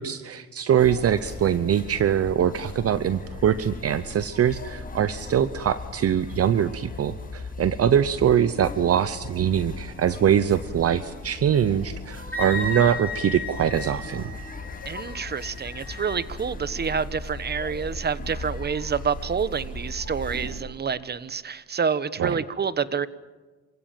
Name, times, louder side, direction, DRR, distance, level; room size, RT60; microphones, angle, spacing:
voice 1, 0.0-14.3 22.2-22.4, right 9 dB, 50° right, 14 dB, 0.8 m, -23 dB
sound 1, 0.8-20.6, left 2 dB, 30° left, 7.3 m, -38 dB
Wind instrument woodwind instrument, 12.3-16.2, left 2 dB, 5° left, 5.7 m, -35 dB
voice 2, 14.9-23.1, right 6 dB, 35° right, 15 dB, 1.1 m, -28 dB
27.0 x 16.5 x 9.1 m, 1.3 s
cardioid pair, 90°, 30 cm